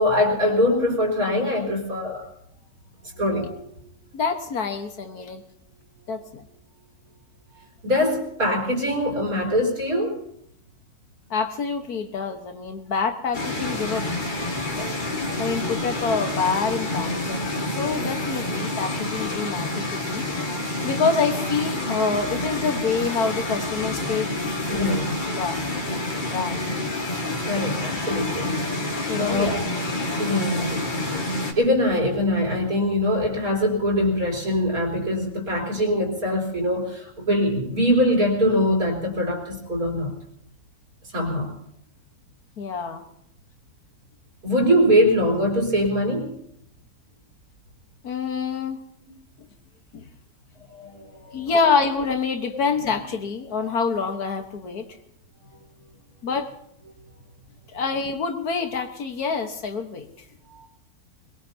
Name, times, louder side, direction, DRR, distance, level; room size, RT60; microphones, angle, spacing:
voice 1, 0.0-2.3 3.2-3.9 7.8-10.2 24.7-25.1 27.4-28.6 29.2-29.5 30.2-30.8 31.6-40.1 41.1-41.5 44.4-46.4 49.1-49.2 50.7-51.5 60.5-60.7, equal, 65° right, 0 dB, 4.4 m, -23 dB
voice 2, 4.1-5.4 6.1-6.4 11.3-14.1 14.8-14.9 15.4-20.2 20.8-24.3 24.8-25.0 25.4-25.6 26.2-26.6 29.1-29.5 31.1-31.2 42.6-43.0 48.0-48.8 49.9-50.1 51.3-54.9 56.2-56.5 57.7-60.1, left 5 dB, 70° left, 6 dB, 1.9 m, -26 dB
sound 1, 13.3-31.5, left 2 dB, 30° left, 2.1 m, -28 dB
22.5 x 22.0 x 2.8 m, 0.73 s
omnidirectional pair, 1.7 m